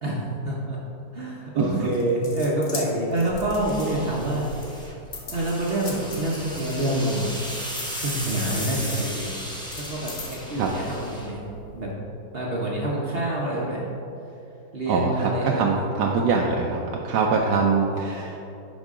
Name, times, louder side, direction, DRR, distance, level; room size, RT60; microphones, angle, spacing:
voice 1, 0.0-0.8 1.1-4.4 5.3-7.3 8.0-9.3 9.8-11.4 11.7-11.9 12.3-13.8 14.7-15.7, right 1 dB, 45° right, -4 dB, 0.9 m, -27 dB
voice 2, 1.5-1.9 10.6-10.7 14.9-18.4, right 4 dB, 70° right, -1 dB, 1.1 m, -23 dB
sound 1, 1.8-4.2 4.6-7.3 7.7-10.4, left 3 dB, 40° left, 0.8 m, -40 dB
sound 2, 3.3-11.9, equal, 5° left, 0.4 m, -36 dB
10.5 x 5.2 x 3.6 m, 2.9 s
omnidirectional pair, 2.1 m